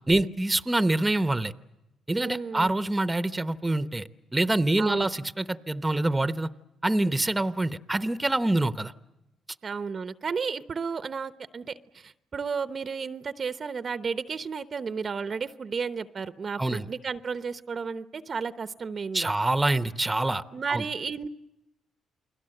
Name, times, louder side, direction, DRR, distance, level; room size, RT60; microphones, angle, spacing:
voice 1, 0.1-1.5 2.1-6.5 6.8-8.9 16.6-16.9 19.1-20.4 20.7-20.8, right 2 dB, 15° right, 13 dB, 0.9 m, -26 dB
voice 2, 2.2-2.7 4.8-5.1 9.6-19.3 20.5-21.3, right 5 dB, 40° right, 13 dB, 0.8 m, -33 dB
29.0 x 21.0 x 7.8 m, 0.95 s
cardioid pair, 90°, 0 cm